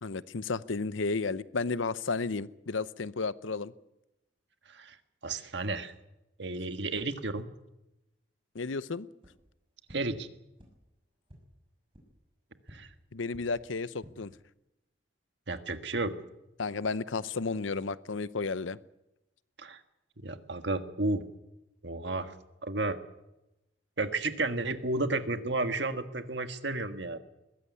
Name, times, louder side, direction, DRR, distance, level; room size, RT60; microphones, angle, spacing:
voice 1, 0.0-3.7 8.5-9.1 13.1-14.3 16.6-18.8, left 4 dB, 85° left, 17 dB, 0.7 m, -33 dB
voice 2, 5.2-5.9 6.4-7.4 9.9-10.3 12.7-12.9 15.5-16.1 19.6-19.8 20.2-21.2 21.8-22.3 22.6-23.0 24.0-27.2, right 2 dB, 65° right, 8 dB, 1.6 m, -32 dB
sound 1, 9.2-9.3 9.9-10.0 10.6-10.7 11.2-11.4 11.9-12.0 12.6-12.7 13.3-13.4 13.9-14.1, equal, 25° right, 6.2 m, -51 dB
21.5 x 15.5 x 9.5 m, 0.93 s
head